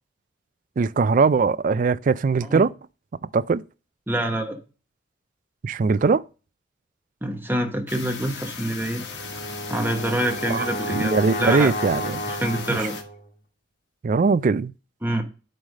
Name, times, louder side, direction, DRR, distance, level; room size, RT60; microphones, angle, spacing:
voice 1, 0.8-2.7 3.3-3.6 5.6-6.2 10.5-12.2 12.7-12.9 14.0-14.7, right 4 dB, 45° right, 0.3 m, -21 dB
voice 2, 4.1-4.6 7.2-9.0 9.7-11.7 12.3-12.9 15.0-15.2, right 1 dB, 10° right, 1.0 m, -26 dB
sound 1, 7.9-13.0, left 5 dB, 65° left, 1.5 m, -37 dB
Brass instrument, 9.0-13.3, equal, 50° left, 1.4 m, -32 dB
9.2 x 3.3 x 6.3 m
head